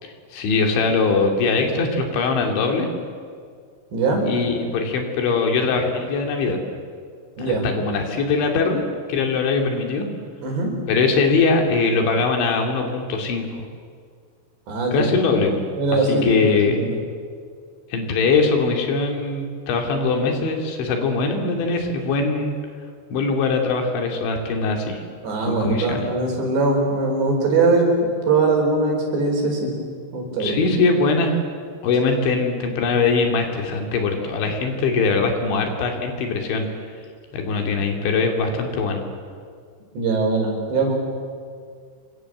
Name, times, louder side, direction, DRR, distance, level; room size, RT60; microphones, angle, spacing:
voice 1, 0.0-2.9 4.3-6.6 7.4-10.1 10.9-13.7 14.9-15.6 16.1-16.8 17.9-22.6 23.1-25.0 25.5-26.1 30.4-31.4 31.8-36.7 37.3-39.0, left 4 dB, 70° left, 3 dB, 4.8 m, -21 dB
voice 2, 3.9-4.3 7.4-7.6 10.4-10.7 14.7-15.1 15.8-16.9 25.2-27.9 28.3-29.7 30.1-30.5 39.9-40.9, right 3 dB, 60° right, 1 dB, 6.9 m, -21 dB
28.0 x 24.0 x 7.8 m, 2.1 s
omnidirectional pair, 5.7 m